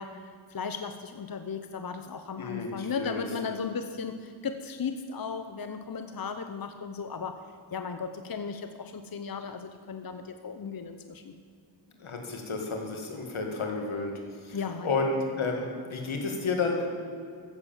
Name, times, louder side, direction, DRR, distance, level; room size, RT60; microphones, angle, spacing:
voice 1, 0.0-7.4 7.7-11.3 14.5-15.0, left 5 dB, 45° left, 8 dB, 0.9 m, -36 dB
voice 2, 2.4-3.2 12.0-14.1 14.4-14.6 14.8-16.9, left 3 dB, 85° left, 2 dB, 2.2 m, -31 dB
14.5 x 7.7 x 7.3 m, 2.3 s
cardioid pair, 55°, 48 cm